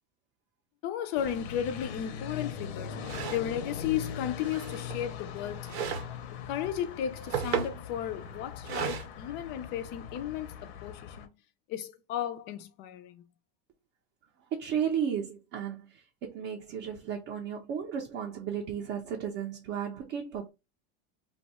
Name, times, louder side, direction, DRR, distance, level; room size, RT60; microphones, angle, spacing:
voice 1, 0.8-3.0 3.3-6.0 6.5-11.3 11.7-13.3, left 10 dB, 35° left, 0.4 m, -34 dB
sound 1, 1.2-11.3, left 7 dB, 80° left, 0.7 m, -41 dB
sound 2, 2.3-2.4 3.0-3.5 4.4-5.0 5.7-6.1 7.0-7.8 8.6-9.1, right 7 dB, 90° right, 0.8 m, -34 dB
voice 2, 14.5-20.5, right 8 dB, 40° right, 0.6 m, -34 dB
2.6 x 2.3 x 4.1 m
supercardioid pair, 160°, 31 cm